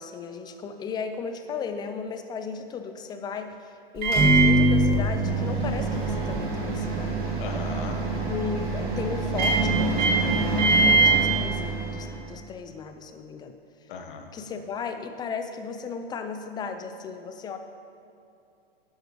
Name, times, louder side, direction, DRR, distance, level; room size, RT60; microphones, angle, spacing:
voice 1, 0.0-3.5 3.9-7.3 8.3-13.5 14.3-17.6, left 5 dB, 15° left, 7 dB, 0.4 m, -35 dB
Microwave oven, 4.0-12.1, right 3 dB, 30° right, 1.8 m, -23 dB
voice 2, 7.4-8.0 13.9-14.3, left 4 dB, 55° left, 4 dB, 1.2 m, -37 dB
12.0 x 8.0 x 3.0 m, 2.6 s
hypercardioid pair, 115°, 30 cm